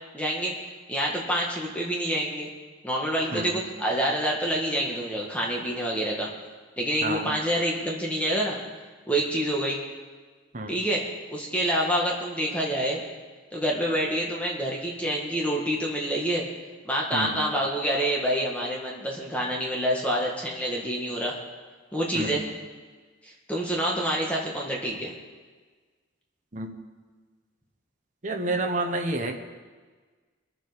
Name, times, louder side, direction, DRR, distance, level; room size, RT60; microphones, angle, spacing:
voice 1, 0.1-0.5 0.9-2.5 2.8-6.3 6.8-8.6 9.1-9.8 10.7-13.0 13.5-16.5 16.8-21.4 21.9-22.4 23.2-25.1, equal, 5° left, -2 dB, 1.7 m, -27 dB
voice 2, 3.3-3.6 7.0-7.3 10.5-10.8 17.1-17.3 22.1-22.4 26.5-26.7 28.2-29.4, right 2 dB, 40° right, 2 dB, 1.2 m, -29 dB
22.5 x 7.7 x 5.1 m, 1.4 s
head